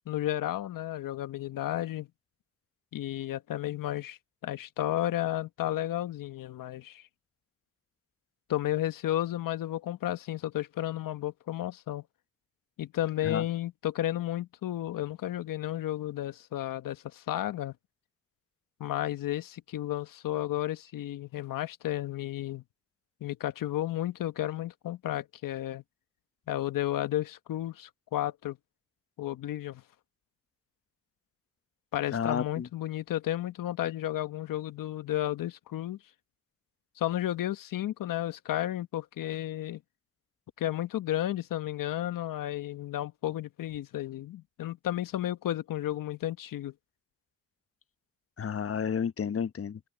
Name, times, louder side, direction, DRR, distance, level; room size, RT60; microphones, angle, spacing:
voice 1, 0.1-2.1 2.9-7.0 8.5-12.0 12.8-17.7 18.8-22.6 23.2-25.8 26.5-28.6 29.2-29.8 31.9-36.0 37.0-39.8 40.6-46.7, left 13 dB, 75° left, 1.3 m, -32 dB
voice 2, 32.1-32.7 48.4-49.9, left 7 dB, 45° left, 1.0 m, -31 dB
supercardioid pair, 50°, 33 cm